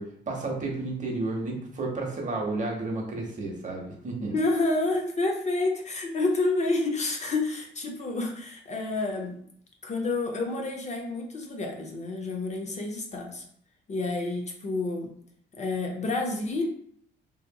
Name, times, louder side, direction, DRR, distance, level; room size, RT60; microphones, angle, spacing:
voice 1, 0.0-4.3, right 2 dB, 40° right, 0 dB, 0.8 m, -32 dB
voice 2, 4.3-9.4 9.8-13.4 13.9-15.1 15.5-16.7, left 2 dB, 35° left, 2 dB, 0.5 m, -29 dB
2.7 x 2.5 x 2.2 m, 0.63 s
cardioid pair, 90°, 20 cm